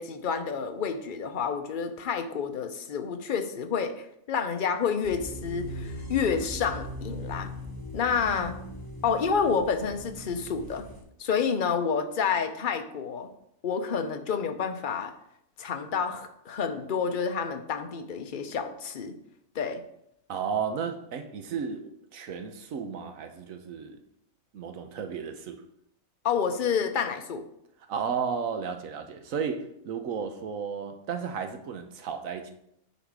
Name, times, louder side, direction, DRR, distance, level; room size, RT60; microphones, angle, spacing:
voice 1, 0.0-7.5 7.9-8.6 9.0-10.9 11.2-13.3 13.6-15.1 15.6-19.2 19.5-19.8 26.2-27.4, left 6 dB, 45° left, 0.7 m, -29 dB
sound 1, 5.0-11.0, equal, 5° left, 3.6 m, -39 dB
voice 2, 20.3-24.0 24.5-25.6 27.9-32.5, right 6 dB, 70° right, 1.2 m, -33 dB
10.0 x 4.1 x 4.7 m
omnidirectional pair, 1.5 m